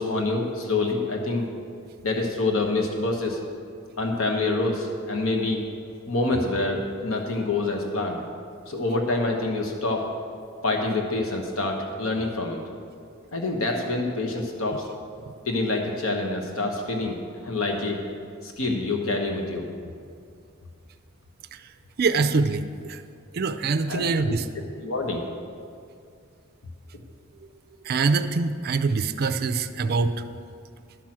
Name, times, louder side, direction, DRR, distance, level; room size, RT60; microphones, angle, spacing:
voice 1, 0.0-1.5 2.0-3.4 4.0-5.6 6.1-8.2 8.7-10.1 10.6-12.6 13.3-14.9 15.5-18.0 18.4-19.7 23.9-24.4 24.8-25.3, left 2 dB, 85° left, 2 dB, 1.1 m, -26 dB
voice 2, 22.0-23.0 23.3-24.5 27.8-30.1, right 4 dB, 50° right, 10 dB, 0.5 m, -24 dB
12.0 x 5.9 x 7.5 m, 2.3 s
head